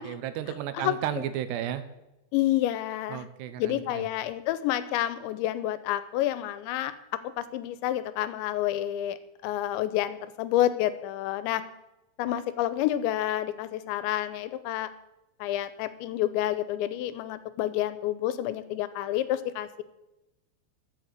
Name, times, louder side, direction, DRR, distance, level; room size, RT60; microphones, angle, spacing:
voice 1, 0.0-1.8 3.1-4.1, right 11 dB, 75° right, 11 dB, 3.0 m, -33 dB
voice 2, 2.3-3.2 3.6-6.9 7.4-9.2 9.4-11.6 12.2-14.9 15.4-19.8, left 13 dB, 90° left, 14 dB, 3.1 m, -29 dB
13.5 x 8.0 x 8.2 m, 0.95 s
omnidirectional pair, 5.1 m